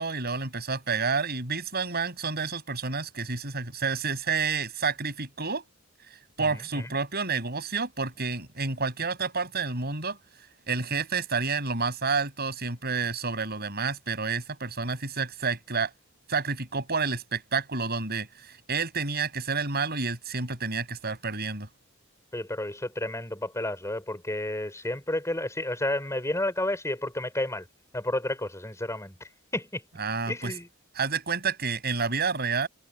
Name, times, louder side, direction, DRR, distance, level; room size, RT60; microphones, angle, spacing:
voice 1, 0.0-5.6 6.4-10.2 10.7-15.9 16.3-21.7 30.0-30.5 30.9-32.7, right 4 dB, 50° right, 7.3 m, -29 dB
voice 2, 6.5-6.9 22.3-27.6 27.9-29.1 29.5-29.8 30.3-30.7, left 1 dB, 15° left, 4.5 m, -31 dB
head